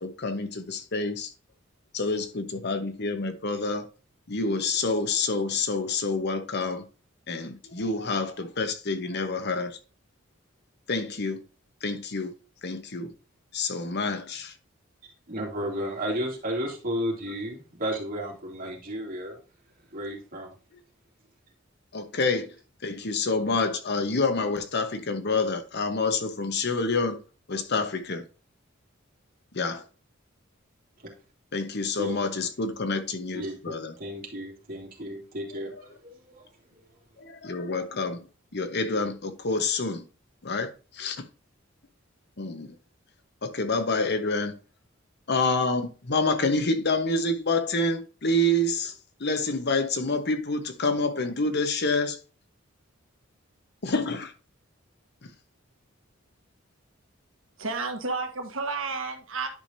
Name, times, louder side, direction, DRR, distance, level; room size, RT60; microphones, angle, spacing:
voice 1, 0.0-1.3 1.9-3.9 4.3-6.8 7.3-9.8 10.9-11.4 11.8-12.3 12.6-13.1 13.5-14.5 21.9-22.5 22.8-27.2 27.5-28.2 29.5-29.8 31.5-33.9 37.2-38.3 38.5-40.1 40.4-41.3 42.4-42.8 43.4-44.5 45.3-52.2 53.8-54.3 55.2-55.3, left 3 dB, 55° left, 1.1 m, -28 dB
voice 2, 15.3-19.4 19.9-20.5 32.0-32.3 33.3-36.8, equal, 45° right, 2.8 m, -33 dB
voice 3, 57.6-59.5, right 3 dB, 75° right, 1.5 m, -31 dB
10.5 x 5.0 x 2.7 m
head